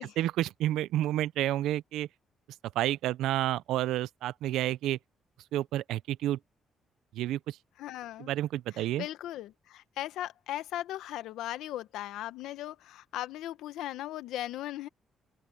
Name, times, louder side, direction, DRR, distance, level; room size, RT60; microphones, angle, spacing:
voice 1, 0.2-2.1 2.8-5.0 5.5-6.4 7.1-7.6 8.3-9.1, right 14 dB, 90° right, 0.5 m, -30 dB
voice 2, 7.8-8.3 8.7-14.9, left 13 dB, 85° left, 1.0 m, -38 dB
open air
cardioid pair, 90°, 0 cm